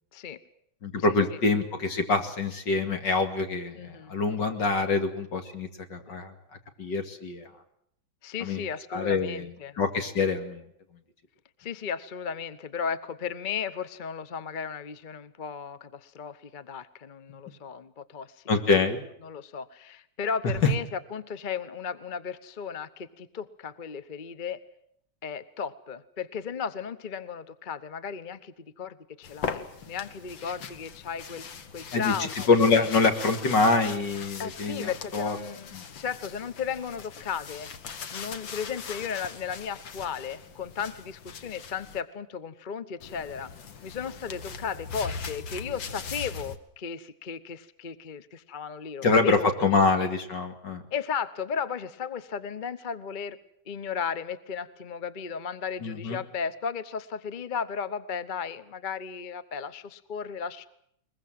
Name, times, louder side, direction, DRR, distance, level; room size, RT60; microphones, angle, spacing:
voice 1, 0.8-6.3 6.8-7.5 8.4-10.7 18.5-19.0 20.6-20.7 31.9-35.4 35.7-35.8 49.0-50.8 55.8-56.2, left 4 dB, 70° left, 6 dB, 3.0 m, -25 dB
voice 2, 3.7-4.1 8.2-9.8 11.6-18.3 19.2-24.6 25.2-31.4 31.7-32.5 32.7-32.9 34.4-37.7 38.1-43.5 43.8-49.5 50.9-53.4 53.7-60.7, left 6 dB, 35° left, 14 dB, 0.9 m, -35 dB
sound 1, 29.2-42.0 43.0-46.6, left 6 dB, 85° left, 2.2 m, -40 dB
22.0 x 21.5 x 7.6 m, 0.71 s
omnidirectional pair, 2.0 m